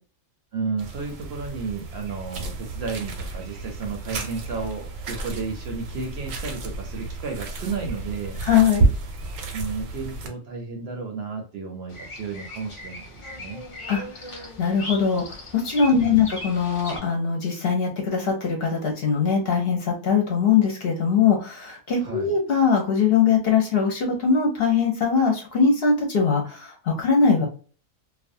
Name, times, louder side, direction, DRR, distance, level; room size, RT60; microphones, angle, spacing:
voice 1, 0.5-8.4 9.5-13.6 16.0-16.3 22.0-22.3, right 5 dB, 60° right, 2 dB, 0.7 m, -33 dB
sound 1, 0.8-10.3, right 3 dB, 85° right, 1.1 m, -30 dB
voice 2, 8.4-8.9 13.9-27.5, left 6 dB, 55° left, 1 dB, 0.8 m, -21 dB
Bird vocalization bird call bird song, 11.9-17.0, left 1 dB, 40° left, 0.4 m, -38 dB
2.4 x 2.2 x 2.6 m, 0.38 s
omnidirectional pair, 1.4 m